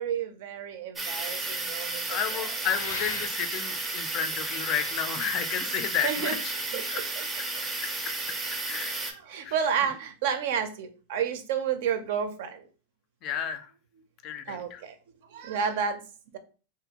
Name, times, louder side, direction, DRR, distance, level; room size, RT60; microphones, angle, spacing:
voice 1, 0.0-2.4 2.7-2.8 6.0-6.4 6.7-7.3 8.9-12.6 14.5-15.0 15.3-16.0 16.3-16.4, right 7 dB, 65° right, 9 dB, 0.5 m, -31 dB
sound 1, 1.0-9.1, right 2 dB, 15° right, 0.5 m, -33 dB
voice 2, 2.1-6.5 6.9-7.0 8.7-9.0 9.4-9.5 13.2-13.7 14.2-14.8, left 9 dB, 40° left, 9 dB, 0.4 m, -32 dB
sound 2, 2.7-3.7 4.5-6.2, left 5 dB, 90° left, 0.6 m, -40 dB
2.5 x 2.5 x 2.8 m, 0.36 s
supercardioid pair, 130°, 0 cm